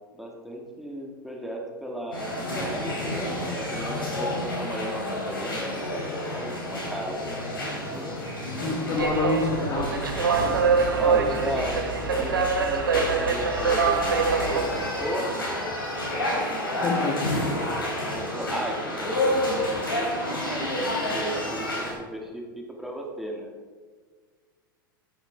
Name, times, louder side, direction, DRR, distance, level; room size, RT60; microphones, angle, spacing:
voice 1, 0.1-7.6 7.9-8.2 10.9-11.8 12.2-15.7 18.1-20.0 20.3-23.5, equal, ahead, 0 dB, 2.2 m, -35 dB
sound 1, 2.1-21.9, left 1 dB, 80° left, 3.7 m, -30 dB
voice 2, 8.6-10.0 16.8-17.2, left 3 dB, 30° left, 1 dB, 1.4 m, -27 dB
sound 2, 9.0-14.6, right 5 dB, 70° right, 1.4 m, -24 dB
12.5 x 9.5 x 3.5 m, 1.5 s
figure-of-eight pair, 85°, 12 cm